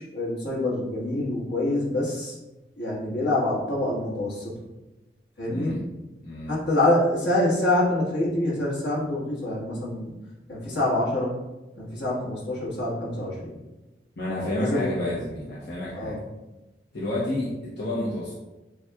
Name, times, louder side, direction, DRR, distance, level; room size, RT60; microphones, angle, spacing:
voice 1, 0.0-2.4 2.8-4.6 5.4-5.8 6.5-10.1 10.5-11.4 11.8-13.5 14.4-15.1 15.9-16.2, left 1 dB, 85° left, -6 dB, 1.4 m, -26 dB
voice 2, 5.5-5.8 6.2-6.5 14.2-16.1 16.9-18.3, left 1 dB, 65° left, -7 dB, 0.8 m, -30 dB
7.0 x 2.4 x 2.3 m, 1.1 s
head